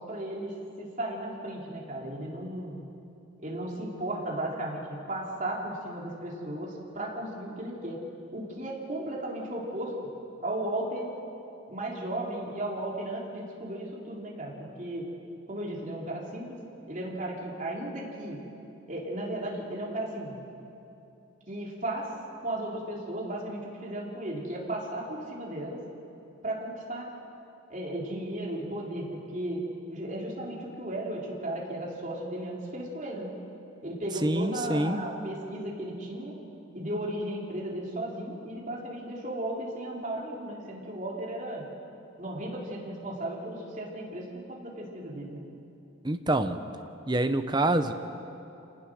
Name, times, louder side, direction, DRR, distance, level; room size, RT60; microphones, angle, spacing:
voice 1, 0.1-2.8 3.4-8.0 8.3-9.9 10.4-11.1 11.7-15.1 15.5-16.6 16.9-18.4 18.9-20.3 21.5-22.1 22.4-25.8 26.4-27.1 27.7-33.3 33.8-36.3 36.7-41.7 42.2-45.4, right 1 dB, 40° right, -3 dB, 3.8 m, -35 dB
voice 2, 34.2-35.0 46.0-46.6 47.1-47.9, right 1 dB, 20° right, 8 dB, 0.9 m, -26 dB
27.5 x 19.0 x 6.4 m, 2.8 s
head